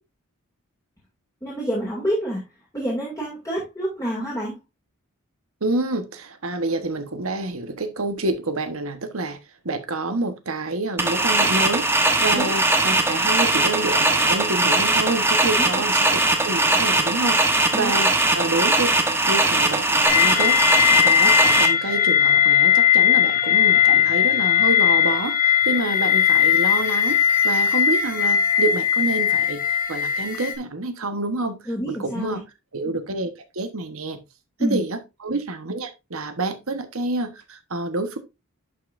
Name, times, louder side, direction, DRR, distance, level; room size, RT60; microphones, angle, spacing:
voice 1, 1.4-2.4 2.7-4.5 12.3-12.5 15.6-15.9 17.7-18.0 31.7-32.4 34.6-34.8, equal, 15° left, 2.4 m, -27 dB
voice 2, 5.6-9.4 9.6-17.4 17.7-18.9 19.3-27.2 27.4-29.6 29.9-32.4 32.7-34.2 34.6-38.2, right 2 dB, 65° right, 1.3 m, -28 dB
sound 1, 11.0-21.7, right 2 dB, 10° right, 1.1 m, -20 dB
sound 2, 20.1-30.5, left 9 dB, 40° left, 1.5 m, -19 dB
11.0 x 5.5 x 2.6 m
head